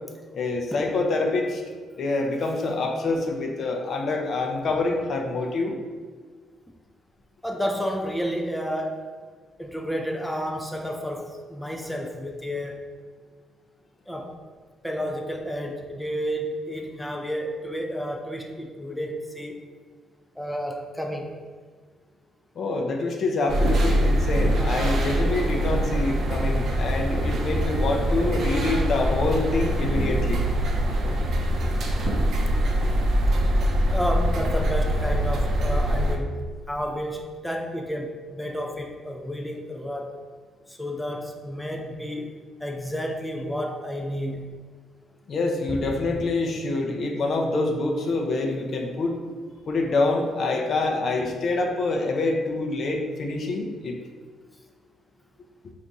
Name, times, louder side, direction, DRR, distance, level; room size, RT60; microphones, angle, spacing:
voice 1, 0.3-1.6 2.0-5.8 22.6-30.4 45.3-49.2 49.7-53.9, left 2 dB, 55° left, 1 dB, 0.5 m, -26 dB
voice 2, 7.4-9.0 9.6-12.9 14.1-14.3 14.8-19.6 20.4-21.4 25.6-26.1 33.9-40.2 40.8-42.4 42.6-44.5 46.1-46.2, equal, 5° left, 2 dB, 0.4 m, -31 dB
sound 1, 23.5-36.2, equal, 65° right, 0.6 m, -23 dB
3.4 x 2.5 x 4.0 m, 1.5 s
cardioid pair, 90°, 0 cm